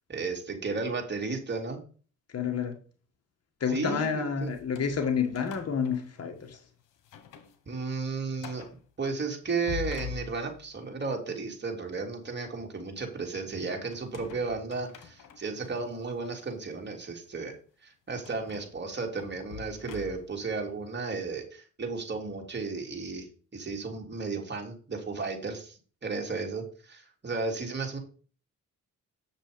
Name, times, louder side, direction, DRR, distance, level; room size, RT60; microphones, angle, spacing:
voice 1, 0.1-1.8 3.7-4.5 7.7-28.0, right 4 dB, 35° right, 3.4 m, -34 dB
voice 2, 2.3-2.7 3.6-6.6, left 6 dB, 50° left, 1.7 m, -29 dB
sound 1, 4.5-6.6 7.0-7.6 7.9-8.0 8.4-8.8 9.4-10.8 13.9-15.7 16.3-16.5 18.2-20.5, left 8 dB, 90° left, 1.4 m, -44 dB
8.9 x 6.5 x 5.2 m
cardioid pair, 90°, 31 cm